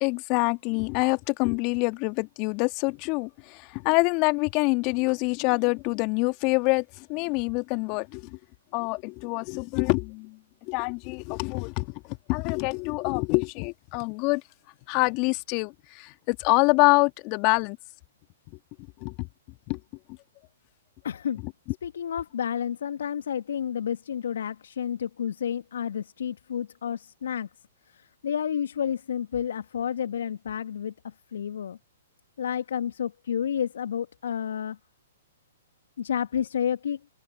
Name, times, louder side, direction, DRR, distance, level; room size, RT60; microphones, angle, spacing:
voice 1, 0.0-8.4 8.7-10.4 10.7-14.4 14.9-17.8 19.0-19.3 19.7-19.8, left 29 dB, 40° left, 1.8 m, -26 dB
voice 2, 21.0-21.4 21.8-27.5 27.9-31.8 32.4-34.8 36.0-37.0, left 8 dB, 65° left, 1.5 m, -30 dB
figure-of-eight pair, 115°, 0 cm